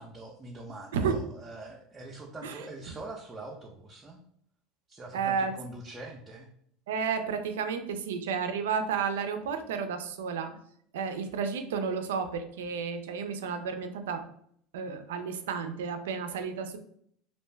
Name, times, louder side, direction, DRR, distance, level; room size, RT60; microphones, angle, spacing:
voice 1, 0.0-4.2 4.9-6.5, right 2 dB, 20° right, -1 dB, 0.4 m, -44 dB
voice 2, 0.9-1.3 2.4-2.6 5.1-5.5 6.9-10.5 10.9-14.2 14.7-16.8, right 6 dB, 85° right, 7 dB, 0.3 m, -32 dB
2.5 x 2.2 x 3.2 m, 0.66 s
hypercardioid pair, 90°, 0 cm